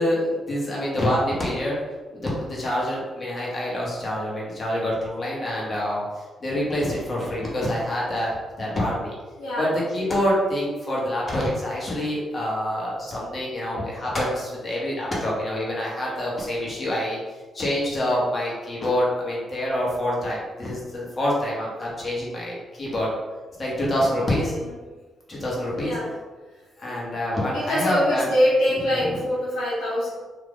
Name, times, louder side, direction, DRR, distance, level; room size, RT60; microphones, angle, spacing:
voice 1, 0.0-1.8 2.1-8.3 8.6-9.1 9.6-17.2 17.5-23.1 23.6-24.5 25.3-25.9 26.8-28.3 28.8-29.2, left 1 dB, 40° left, -5 dB, 1.3 m, -26 dB
voice 2, 9.4-9.7 11.9-12.0 24.4-24.8 25.8-26.1 26.8-27.0 27.5-30.1, equal, 85° left, -6 dB, 0.7 m, -24 dB
2.8 x 2.4 x 3.5 m, 1.3 s
supercardioid pair, 60°, 0 cm